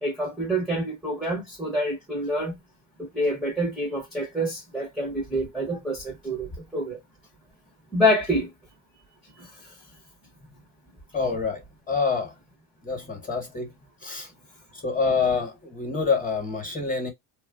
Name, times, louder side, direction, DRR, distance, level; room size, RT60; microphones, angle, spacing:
voice 1, 0.0-2.6 3.0-7.0 7.9-8.5 9.4-9.5, equal, ahead, 0.7 m, -27 dB
voice 2, 11.1-11.6 11.9-12.3 12.8-13.7 14.0-14.3 14.8-17.1, left 4 dB, 15° left, 1.0 m, -26 dB
3.0 x 2.3 x 2.2 m
cardioid pair, 130°, 49 cm